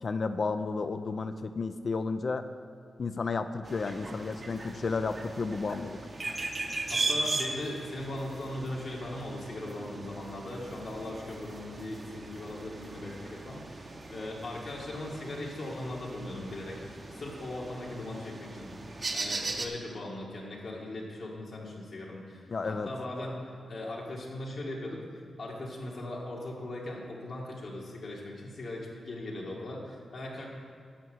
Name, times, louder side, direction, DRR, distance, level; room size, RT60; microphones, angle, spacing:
voice 1, 0.0-2.5 3.0-6.0 22.5-22.9, left 4 dB, 40° left, 10 dB, 0.5 m, -32 dB
sound 1, 3.6-19.7, right 2 dB, 30° right, 0.8 m, -38 dB
voice 2, 6.9-18.7 19.1-30.5, left 1 dB, 60° left, -3 dB, 2.0 m, -39 dB
10.0 x 6.4 x 7.8 m, 2.1 s
wide cardioid pair, 140°, 0 cm